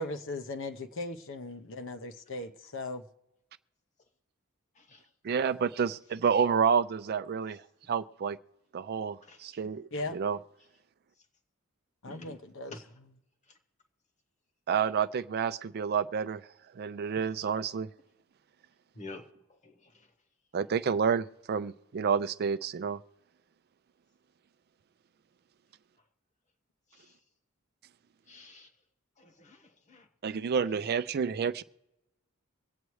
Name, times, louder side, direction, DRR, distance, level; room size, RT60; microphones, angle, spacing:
voice 1, 0.0-3.0 9.9-10.2 12.0-13.1, left 2 dB, 65° left, 8 dB, 0.8 m, -38 dB
voice 2, 5.2-7.6 7.9-8.4 8.7-10.4 14.7-16.4 16.7-17.9 20.5-23.0 30.2-31.6, right 6 dB, 50° right, 13 dB, 0.4 m, -29 dB
voice 3, 9.3-9.6 10.0-10.2 12.1-12.3 12.7-12.9 18.9-19.3 19.6-19.7 28.3-28.7 29.2-29.6 29.9-30.0, left 2 dB, 35° left, 6 dB, 1.2 m, -47 dB
24.0 x 8.3 x 3.1 m, 0.94 s
head